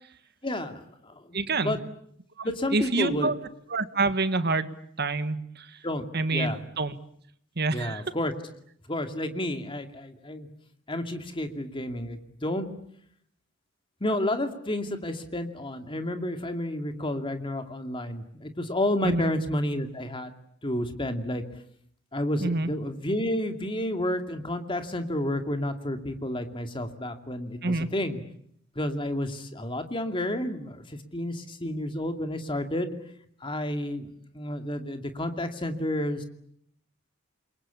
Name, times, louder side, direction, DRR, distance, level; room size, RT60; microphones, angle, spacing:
voice 1, 0.4-1.8 2.4-3.3 5.8-6.1 6.3-6.6 7.7-8.3 8.9-10.5 10.9-12.7 14.0-20.3 20.6-21.4 22.1-28.2 28.8-33.0 33.4-34.1 34.3-36.2, left 1 dB, 25° left, 7 dB, 2.5 m, -30 dB
voice 2, 1.3-1.8 2.4-3.4 3.7-4.7 5.0-5.8 6.1-6.9 7.6-8.0 19.0-19.3 22.4-22.7 27.6-27.9, right 3 dB, 50° right, 12 dB, 1.7 m, -27 dB
28.5 x 23.0 x 8.5 m, 0.69 s
head